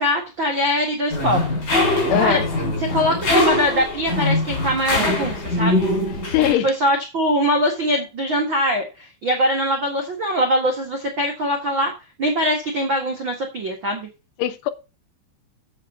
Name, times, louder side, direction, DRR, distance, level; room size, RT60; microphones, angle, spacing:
voice 1, 0.0-1.4 2.2-2.4 2.9-5.9 6.4-11.9 12.2-14.1, equal, 75° right, 1.1 m, -22 dB
sound 1, 1.1-6.5, left 2 dB, 25° left, 4.0 m, -22 dB
voice 2, 2.1-2.5 6.2-6.7 14.4-14.7, left 13 dB, 80° left, 2.6 m, -21 dB
8.0 x 7.5 x 5.5 m
omnidirectional pair, 5.2 m